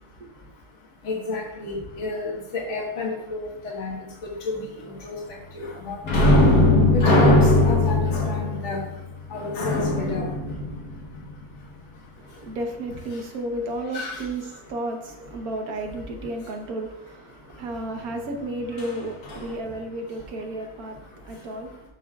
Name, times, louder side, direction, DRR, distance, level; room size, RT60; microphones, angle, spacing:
voice 1, 0.1-12.6 13.1-13.3 13.9-14.5 16.4-16.5 17.3-18.1 19.5-19.8 20.0-21.9, left 3 dB, 50° left, 1.6 m, -34 dB
sound 1, 6.0-11.4 18.8-18.9 19.3-19.5, left 2 dB, 70° left, 1.6 m, -19 dB
voice 2, 12.2-21.8, right 1 dB, 70° right, 1.5 m, -33 dB
13.0 x 5.2 x 2.4 m
omnidirectional pair, 1.6 m